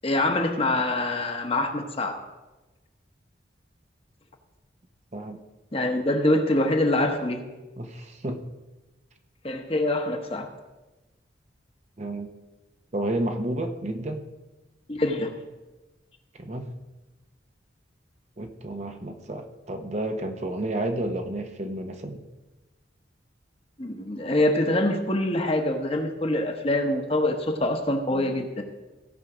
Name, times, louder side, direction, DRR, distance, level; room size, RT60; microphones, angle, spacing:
voice 1, 0.0-2.2 5.7-7.4 9.4-10.5 14.9-15.3 23.8-28.6, left 1 dB, 30° left, 4 dB, 1.1 m, -25 dB
voice 2, 7.8-8.4 12.0-12.3 12.9-14.2 16.4-16.7 18.4-22.2, right 1 dB, 40° right, 6 dB, 0.8 m, -31 dB
16.5 x 5.6 x 4.9 m, 1.1 s
head